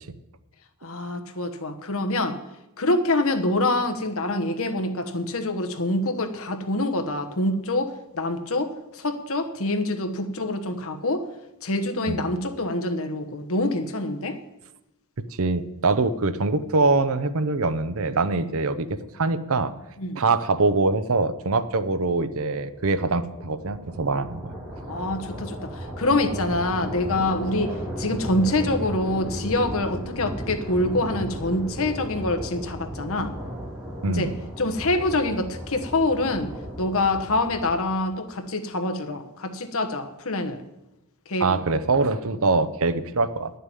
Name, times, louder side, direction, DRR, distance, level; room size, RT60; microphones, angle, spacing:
voice 1, 0.8-2.4 2.8-11.2 11.6-14.4 20.0-20.2 24.9-33.3 34.1-34.3 34.6-36.5 36.8-40.6 41.3-41.6, left 2 dB, 65° left, 6 dB, 1.2 m, -26 dB
voice 2, 15.4-19.7 20.2-24.5 34.0-34.3 41.4-43.5, right 3 dB, 65° right, 13 dB, 0.8 m, -23 dB
sound 1, 22.6-38.1, equal, 10° right, 3.1 m, -35 dB
10.5 x 6.8 x 9.2 m, 0.95 s
head